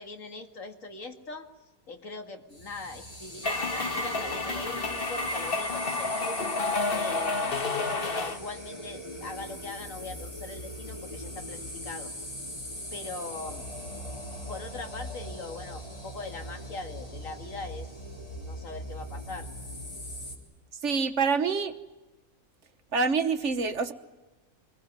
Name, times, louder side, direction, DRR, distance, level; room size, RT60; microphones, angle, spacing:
voice 1, 0.0-1.5 1.9-6.4 6.9-12.1 12.9-13.6 14.5-17.9 18.3-19.5, left 3 dB, 65° left, 5 dB, 2.5 m, -41 dB
sound 1, 2.5-20.4, equal, 25° left, 3.9 m, -40 dB
sound 2, 3.4-8.4, left 3 dB, 40° left, 1.6 m, -30 dB
voice 2, 20.8-21.7 22.9-23.9, right 5 dB, 55° right, 9 dB, 1.4 m, -26 dB
24.5 x 21.5 x 9.5 m, 1.1 s
omnidirectional pair, 1.5 m